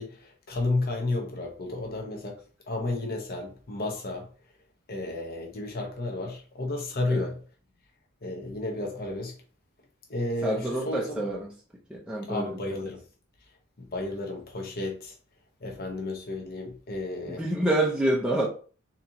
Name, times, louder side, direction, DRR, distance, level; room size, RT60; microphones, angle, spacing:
voice 1, 0.0-2.4 2.7-4.3 4.9-7.4 8.2-9.4 10.1-11.3 12.2-13.0 13.8-15.1 15.6-17.4, left 2 dB, 45° left, 0.9 m, -32 dB
voice 2, 10.4-11.5 11.9-12.5 17.3-18.5, right 1 dB, 5° right, 0.5 m, -27 dB
4.0 x 2.9 x 2.7 m
head